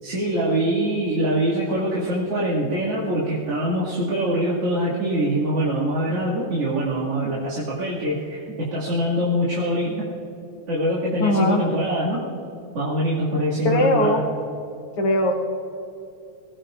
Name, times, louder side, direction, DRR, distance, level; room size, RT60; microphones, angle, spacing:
voice 1, 0.0-10.1 10.7-12.2 12.7-14.2, right 1 dB, 50° right, -8 dB, 3.3 m, -24 dB
voice 2, 11.2-11.6 13.6-14.2 15.0-15.3, left 1 dB, 50° left, 0 dB, 2.5 m, -19 dB
26.5 x 20.0 x 2.6 m, 2.7 s
omnidirectional pair, 3.4 m